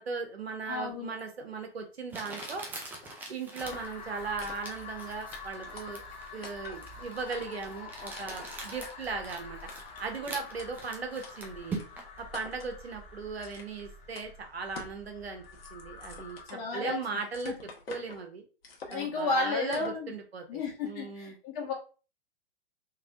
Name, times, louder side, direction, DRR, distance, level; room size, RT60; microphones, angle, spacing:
voice 1, 0.0-2.7 3.3-6.0 6.3-9.6 10.0-11.8 12.2-15.4 15.7-17.5 17.9-18.4 18.9-21.4, right 4 dB, 85° right, 4 dB, 0.9 m, -38 dB
voice 2, 0.7-1.1 16.5-17.0 17.4-17.5 18.9-20.1 20.5-21.7, left 3 dB, 40° left, 0 dB, 1.3 m, -32 dB
Crumpling crinkling, 1.2-1.3 2.1-12.2, right 3 dB, 5° right, 0.3 m, -44 dB
sound 1, 2.4-2.5 2.9-3.1 3.7-4.1 4.4-4.9 5.3-5.4 5.8-6.2 6.4-6.8 7.3-7.7 8.1-8.4 8.8-8.9 9.7-10.0 10.6-10.7 11.2-11.3 11.8-11.9 12.3-12.7 13.4-13.8 14.1-14.3 14.7-15.0 15.3-17.0 17.3-18.2 18.6-19.2 19.7-20.0, left 4 dB, 75° left, 0.9 m, -47 dB
sound 2, 3.6-16.4, left 4 dB, 20° left, 0.7 m, -47 dB
3.3 x 2.9 x 2.4 m, 0.35 s
figure-of-eight pair, 110°, 30 cm